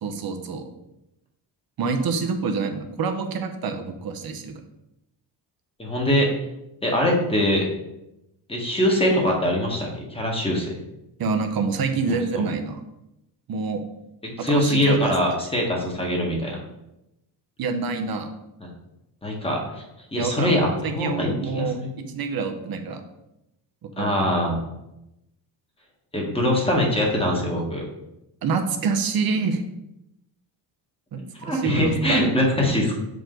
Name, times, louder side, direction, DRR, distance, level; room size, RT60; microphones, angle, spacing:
voice 1, 0.0-0.7 1.8-4.5 11.2-12.8 13.5-13.8 14.4-15.0 17.6-18.3 20.1-20.6 20.8-23.0 23.8-24.3 28.4-29.6 31.1-31.2 31.5-32.2, right 4 dB, 50° right, 6 dB, 1.0 m, -27 dB
voice 2, 5.8-6.4 6.8-7.6 8.5-10.7 12.1-12.4 14.4-16.6 18.6-18.7 19.2-19.8 20.1-21.9 24.0-24.6 26.1-27.8 31.4-33.0, left 1 dB, 10° left, -1 dB, 1.6 m, -23 dB
6.6 x 5.1 x 3.9 m, 0.90 s
cardioid pair, 120°, 47 cm